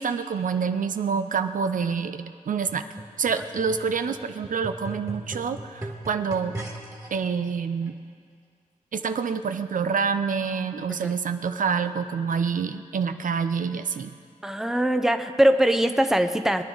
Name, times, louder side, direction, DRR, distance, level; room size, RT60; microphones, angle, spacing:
voice 1, 0.0-2.9 3.2-6.6 7.1-7.9 8.9-14.1, right 6 dB, 65° right, 9 dB, 0.6 m, -27 dB
sound 1, 2.7-7.1 7.9-8.0, right 2 dB, 25° right, 2.0 m, -39 dB
voice 2, 14.4-16.6, right 1 dB, 5° right, 8 dB, 0.7 m, -22 dB
21.0 x 10.0 x 3.9 m, 2.1 s
wide cardioid pair, 80°, 15 cm